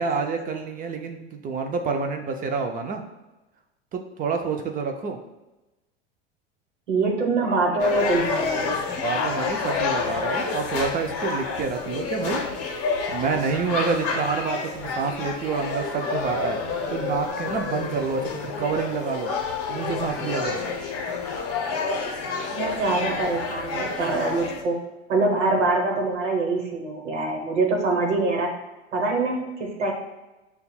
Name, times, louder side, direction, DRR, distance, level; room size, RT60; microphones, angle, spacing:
voice 1, 0.0-3.0 3.9-5.2 9.0-12.4 13.1-16.6 16.9-19.3 19.7-20.6, right 5 dB, 25° right, 5 dB, 0.4 m, -28 dB
voice 2, 6.9-8.7 22.5-24.8 25.1-28.5 28.9-29.9, right 3 dB, 85° right, -1 dB, 1.0 m, -24 dB
sound 1, 7.8-24.6, left 4 dB, 40° left, 0.7 m, -29 dB
6.6 x 2.3 x 2.3 m, 1.1 s
hypercardioid pair, 90°, 35 cm